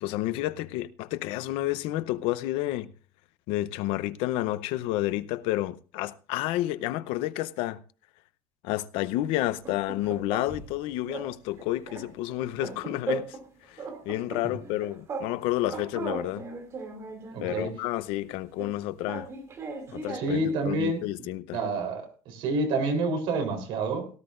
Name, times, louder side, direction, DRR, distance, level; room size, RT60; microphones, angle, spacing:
voice 1, 0.0-2.9 3.5-7.8 8.6-13.4 13.7-16.5 17.4-19.3 19.9-21.6, left 16 dB, 75° left, 0.7 m, -30 dB
sound 1, 9.4-10.8 11.1-11.3 11.6-13.5 13.8-15.3 15.6-17.8 18.6-20.6, right 4 dB, 30° right, 2.6 m, -38 dB
voice 2, 17.3-17.7 20.1-24.1, right 2 dB, 65° right, 3.7 m, -29 dB
17.5 x 12.5 x 2.5 m
cardioid pair, 165°, 9 cm